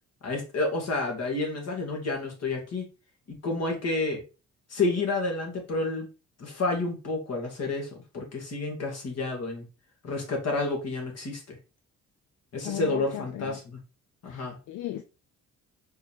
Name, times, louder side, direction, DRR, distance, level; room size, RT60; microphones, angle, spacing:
voice 1, 0.2-2.8 3.3-4.2 4.7-6.1 6.4-9.7 10.0-11.6 12.5-13.8 14.2-14.6, left 3 dB, 55° left, 1.9 m, -30 dB
voice 2, 12.6-13.6 14.3-15.0, left 12 dB, 75° left, 0.5 m, -36 dB
4.5 x 3.0 x 3.5 m
cardioid pair, 90°, 30 cm